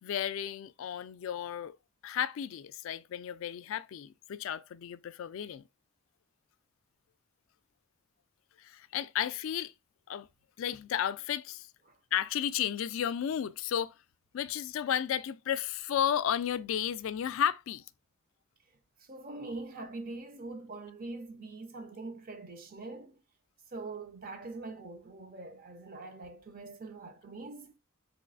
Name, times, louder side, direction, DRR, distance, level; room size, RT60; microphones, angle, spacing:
voice 1, 0.0-1.8 2.0-5.6 8.6-9.7 10.1-10.3 10.6-11.7 12.1-13.9 14.3-17.8, left 9 dB, 65° left, 0.3 m, -33 dB
voice 2, 19.0-23.2 23.7-27.7, right 3 dB, 45° right, 0.6 m, -43 dB
3.9 x 3.0 x 2.5 m
head